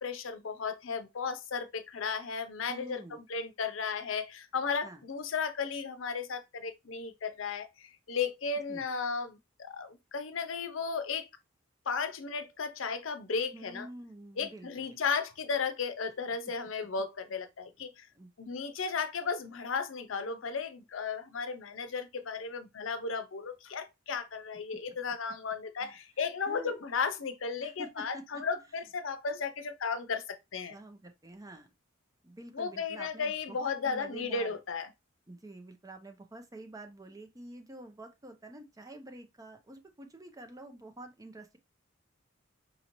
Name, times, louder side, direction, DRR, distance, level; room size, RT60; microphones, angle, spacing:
voice 1, 0.0-11.2 11.9-13.9 14.4-18.1 18.4-30.8 32.5-34.9, left 5 dB, 75° left, 0.6 m, -35 dB
voice 2, 2.7-3.2 4.8-5.0 8.7-8.8 13.5-15.0 16.4-16.5 18.1-18.6 25.8-25.9 26.5-26.8 27.6-28.4 30.7-31.7 32.2-34.6 35.3-41.6, right 1 dB, 20° right, 0.6 m, -48 dB
5.2 x 2.7 x 2.9 m
head